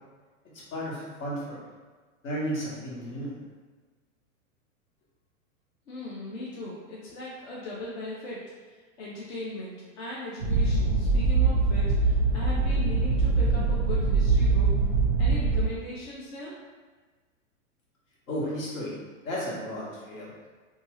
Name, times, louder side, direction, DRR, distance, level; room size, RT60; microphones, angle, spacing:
voice 1, 0.4-1.6 2.2-3.4 18.3-18.9 19.2-20.3, equal, 80° left, -6 dB, 1.3 m, -33 dB
voice 2, 5.9-14.7 15.2-16.5, left 1 dB, 50° left, -5 dB, 0.6 m, -38 dB
sound 1, 10.4-15.6, right 3 dB, 30° right, 0.4 m, -23 dB
2.8 x 2.3 x 2.9 m, 1.4 s
supercardioid pair, 175°, 40 cm